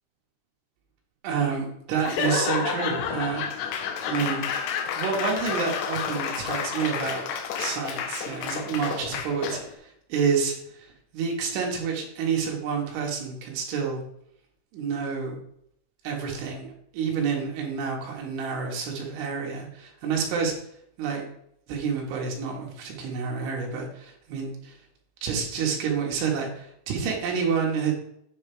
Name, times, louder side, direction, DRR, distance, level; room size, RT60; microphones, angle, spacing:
voice 1, 1.2-3.4 4.0-7.3 7.6-14.0 14.7-15.4 16.0-20.5 21.0-21.3 21.7-24.8 25.2-27.9, right 6 dB, 70° right, 0 dB, 3.7 m, -29 dB
Laughter / Applause / Crowd, 2.0-9.8, left 7 dB, 80° left, 3.2 m, -30 dB
9.5 x 7.9 x 3.4 m, 0.73 s
omnidirectional pair, 5.9 m